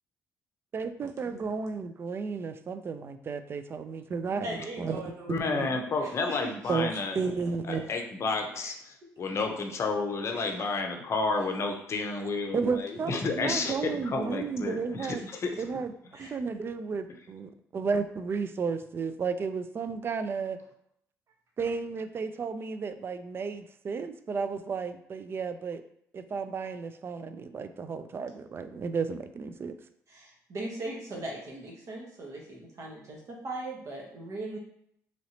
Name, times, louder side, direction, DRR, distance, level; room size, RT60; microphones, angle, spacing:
voice 1, 0.7-4.5 4.8-5.0 5.3-5.7 6.7-6.9 7.2-7.8 12.5-15.2 15.6-15.9 16.2-20.6 21.6-25.8 26.1-29.7, right 5 dB, 40° right, 10 dB, 0.3 m, -33 dB
voice 2, 4.3-6.4 8.5-8.7 10.3-10.6 16.1-16.3 30.1-34.6, right 2 dB, 55° right, -2 dB, 1.1 m, -40 dB
voice 3, 5.3-7.2 7.7-15.1 15.5-15.6, left 3 dB, 45° left, 4 dB, 0.6 m, -31 dB
3.0 x 2.7 x 2.8 m, 0.71 s
supercardioid pair, 75°, 6 cm